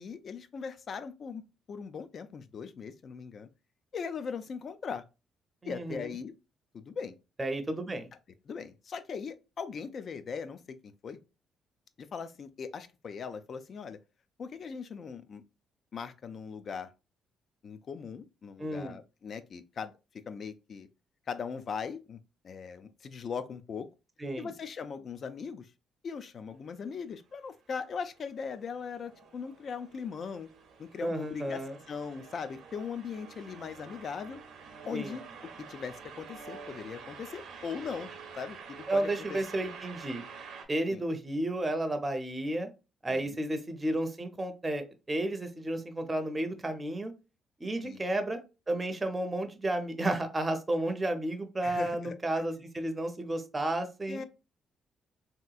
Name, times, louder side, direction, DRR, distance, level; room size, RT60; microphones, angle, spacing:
voice 1, 0.0-1.4 1.7-3.5 3.9-5.0 5.7-6.3 6.7-7.1 8.5-11.2 12.0-14.0 14.4-15.4 15.9-16.9 17.6-19.9 20.3-20.9 21.3-22.2 22.4-23.9 24.4-25.7 26.0-30.5 30.8-34.4 34.8-35.2 35.6-39.4 40.9-41.0 43.1-43.4 47.8-48.0 51.6-52.4 54.1-54.2, left 6 dB, 50° left, 0.4 m, -39 dB
voice 2, 5.6-6.1 7.4-8.1 18.6-19.0 24.2-24.5 31.0-31.8 34.9-35.1 38.9-40.2 40.7-42.7 43.0-47.1 47.6-48.4 48.7-54.2, right 1 dB, 20° right, 0.6 m, -32 dB
sound 1, 28.1-40.6, right 5 dB, 75° right, 0.7 m, -48 dB
3.4 x 2.8 x 2.3 m
cardioid pair, 90°, 0 cm